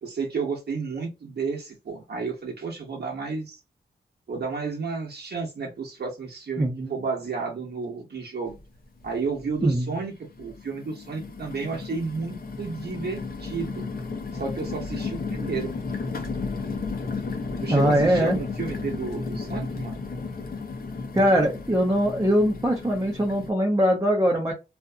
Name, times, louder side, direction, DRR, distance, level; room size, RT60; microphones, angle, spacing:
voice 1, 0.0-3.6 4.3-8.6 9.0-13.9 14.3-15.7 17.6-20.0, right 4 dB, 65° right, 0 dB, 0.9 m, -32 dB
voice 2, 6.6-6.9 9.6-9.8 17.7-18.4 21.1-24.5, equal, 20° right, -1 dB, 0.8 m, -21 dB
sound 1, 8.5-8.6 9.0-9.7 10.3-23.5, left 4 dB, 55° left, 0.8 m, -33 dB
2.6 x 2.5 x 2.3 m, 0.27 s
cardioid pair, 60°, 18 cm